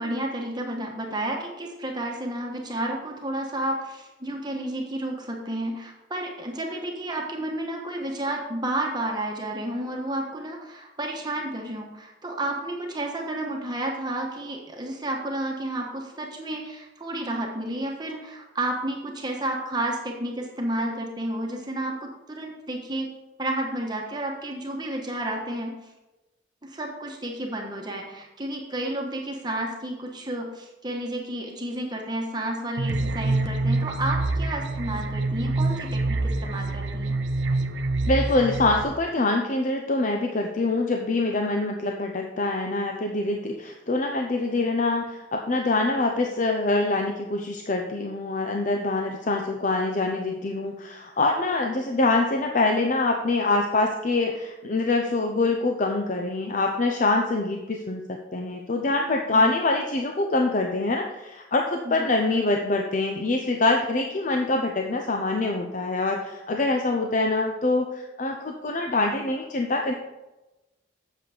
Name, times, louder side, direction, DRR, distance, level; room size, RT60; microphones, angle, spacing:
voice 1, 0.0-23.1 23.4-25.8 26.6-37.1 59.3-59.5 61.8-62.1, right 1 dB, 25° right, 0 dB, 1.2 m, -31 dB
sound 1, 32.8-38.8, right 2 dB, 85° right, 0.7 m, -26 dB
voice 2, 38.0-69.9, left 2 dB, 45° left, 2 dB, 0.7 m, -25 dB
8.4 x 6.9 x 4.9 m, 1.0 s
head